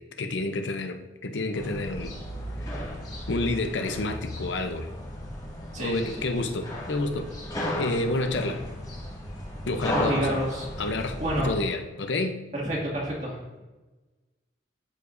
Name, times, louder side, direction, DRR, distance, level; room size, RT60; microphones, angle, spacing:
voice 1, 0.0-2.1 2.6-2.9 3.3-4.9 5.8-7.3 7.7-8.6 9.7-10.4 10.8-12.4, left 2 dB, 90° left, 7 dB, 0.7 m, -29 dB
sound 1, 1.5-11.4, left 1 dB, 20° left, 1.7 m, -35 dB
voice 2, 5.7-6.1 10.0-10.7 11.2-11.6 12.5-13.6, right 1 dB, 40° right, -3 dB, 2.1 m, -29 dB
13.0 x 4.9 x 2.6 m, 1.1 s
head